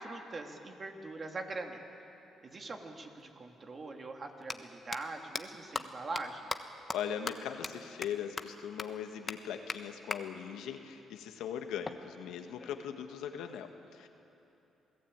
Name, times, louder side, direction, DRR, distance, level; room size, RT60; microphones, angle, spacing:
voice 1, 0.0-1.8 2.4-6.5, right 3 dB, 40° right, 3 dB, 2.6 m, -42 dB
sound 1, 3.2-3.3 4.3-4.5 4.9-5.0 5.3-5.4 5.7-5.8 6.2-6.3 6.5-6.6 6.9-7.0 7.3-7.4 7.6-7.7 8.0-8.1 8.4-8.5 8.8-8.9 9.3-9.4 9.7-9.8 10.1-10.2 11.8-12.9, left 4 dB, 35° left, 1.2 m, -37 dB
voice 2, 6.9-14.1, left 8 dB, 90° left, 6 dB, 1.6 m, -40 dB
27.5 x 18.0 x 8.8 m, 2.9 s
cardioid pair, 90°, 0 cm